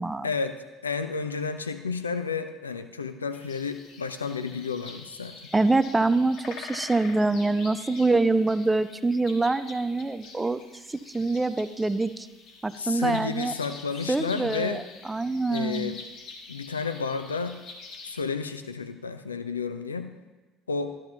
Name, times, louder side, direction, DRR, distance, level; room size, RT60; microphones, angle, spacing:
voice 1, 0.2-5.4 12.8-14.8 15.5-16.0 16.5-17.6 18.0-20.1 20.7-20.9, left 5 dB, 85° left, 10 dB, 0.5 m, -31 dB
sound 1, 3.3-18.2, left 4 dB, 60° left, 1.4 m, -45 dB
voice 2, 5.5-10.6 10.9-12.3 12.6-13.5 14.1-14.8 15.1-15.9, right 3 dB, 15° right, 12 dB, 0.5 m, -25 dB
12.5 x 9.8 x 2.9 m, 1.2 s
figure-of-eight pair, 60°, 0 cm